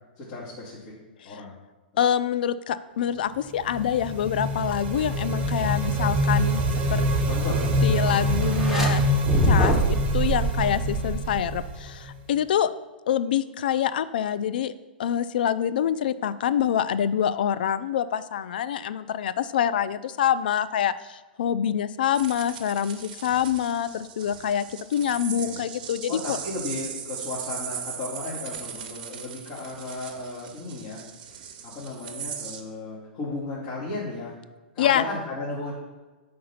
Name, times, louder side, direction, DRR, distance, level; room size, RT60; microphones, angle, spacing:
voice 1, 0.2-1.0 1.2-1.5 7.3-8.4 25.4-25.7 26.1-31.0 31.6-34.3 34.7-35.7, left 2 dB, 45° left, -9 dB, 1.9 m, -35 dB
voice 2, 2.0-6.6 6.9-7.1 7.8-9.0 9.4-12.7 13.1-14.7 15.0-26.4 34.8-35.0, left 9 dB, 65° left, 13 dB, 0.3 m, -26 dB
sound 1, 3.4-12.2, right 1 dB, 30° right, 1.1 m, -25 dB
sound 2, 8.4-8.9 9.2-11.8, right 1 dB, ahead, 1.1 m, -24 dB
sound 3, 22.1-32.6, right 8 dB, 55° right, 0.7 m, -38 dB
5.2 x 3.9 x 5.5 m, 1.2 s
figure-of-eight pair, 105°, 5 cm